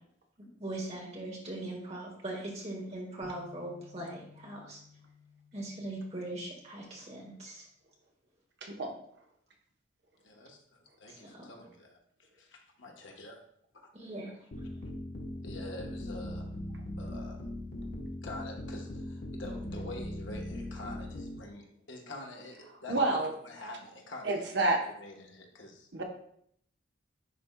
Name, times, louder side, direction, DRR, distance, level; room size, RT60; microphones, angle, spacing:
voice 1, 0.4-4.8 5.5-7.7 11.1-11.5 13.9-14.3, right 1 dB, 35° right, -2 dB, 1.7 m, -40 dB
sound 1, 3.2-7.2, left 4 dB, 25° left, 1.8 m, -57 dB
voice 2, 8.6-8.9 22.9-23.3 24.2-24.8 25.9-26.0, right 2 dB, 60° right, 2 dB, 0.9 m, -28 dB
voice 3, 10.2-13.4 13.7-13.9 15.4-16.5 17.0-17.4 18.2-24.3 24.6-25.9, left 2 dB, 75° left, 1 dB, 1.2 m, -46 dB
sound 2, 14.5-21.4, left 1 dB, 50° left, 1.0 m, -40 dB
10.0 x 4.3 x 2.3 m, 0.67 s
head